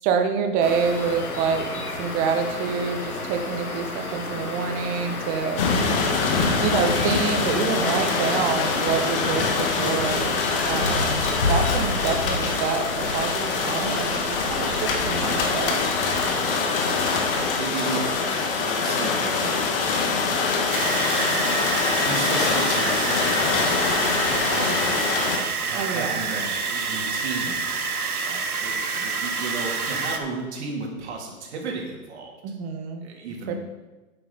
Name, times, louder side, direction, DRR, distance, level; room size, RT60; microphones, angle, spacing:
voice 1, 0.0-1.7 2.0-5.6 6.6-10.3 10.7-11.1 11.5-15.8 25.8-26.2 32.4-33.0 33.5-33.6, right 6 dB, 20° right, 5 dB, 0.9 m, -27 dB
sound 1, 0.6-17.4, left 2 dB, 80° left, 2.3 m, -31 dB
sound 2, 5.6-25.4, left 4 dB, 40° left, 1.7 m, -24 dB
voice 2, 17.2-19.7 22.0-23.8 24.4-25.0 25.3-32.4 33.0-33.6, right 3 dB, 50° right, 0 dB, 3.1 m, -34 dB
sound 3, 20.7-30.2, right 4 dB, 85° right, 1.4 m, -28 dB
11.5 x 8.9 x 4.1 m, 1.2 s
hypercardioid pair, 135°, 43 cm